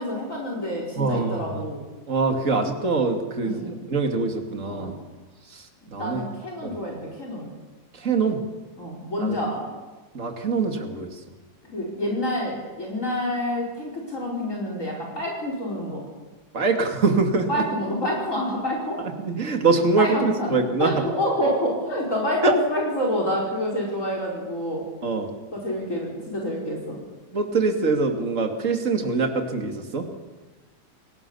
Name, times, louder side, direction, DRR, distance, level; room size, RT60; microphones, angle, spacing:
voice 1, 0.0-1.8 3.4-3.7 4.7-4.9 5.9-7.5 8.8-9.6 11.6-16.0 17.5-19.0 20.0-24.8 25.5-27.0, equal, 45° left, -1 dB, 5.3 m, -28 dB
voice 2, 1.0-1.6 2.1-4.9 5.5-6.2 6.6-6.8 7.9-8.4 9.2-9.3 10.1-11.2 16.5-17.6 19.2-21.1 22.4-22.6 25.0-25.3 27.3-30.1, right 3 dB, 45° right, 4 dB, 2.7 m, -24 dB
29.0 x 19.0 x 7.1 m, 1.2 s
omnidirectional pair, 2.0 m